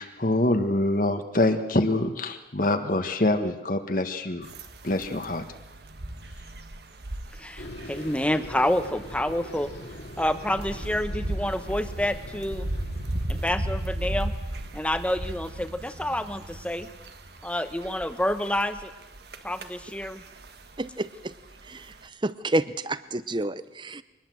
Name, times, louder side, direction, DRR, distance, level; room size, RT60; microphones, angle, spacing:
voice 1, 0.0-4.5 4.8-5.4, left 1 dB, 45° left, 7 dB, 1.4 m, -25 dB
sound 1, 4.4-22.1, right 1 dB, 60° right, 1.6 m, -37 dB
voice 2, 7.4-9.7 10.2-12.7 13.3-14.3 14.7-16.9 17.4-18.9 19.4-20.2, left 1 dB, 5° left, 10 dB, 1.1 m, -28 dB
sound 2, 7.6-15.9, left 1 dB, 60° left, 2.3 m, -43 dB
voice 3, 20.8-21.3 21.7-21.9 22.2-24.0, right 1 dB, 25° right, 15 dB, 0.7 m, -29 dB
23.5 x 20.0 x 7.8 m, 1.0 s
head